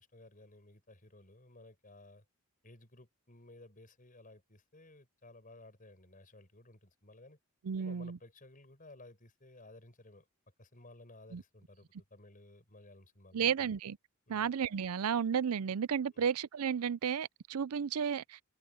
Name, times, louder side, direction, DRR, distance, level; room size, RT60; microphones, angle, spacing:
voice 1, 0.0-2.2 2.6-7.4 7.8-10.3 10.6-13.6 14.3-14.5 16.1-16.3, left 2 dB, 40° left, 7.3 m, -57 dB
voice 2, 7.6-8.2 11.3-11.4 13.3-14.0 14.3-18.4, right 7 dB, 85° right, 0.5 m, -33 dB
open air
head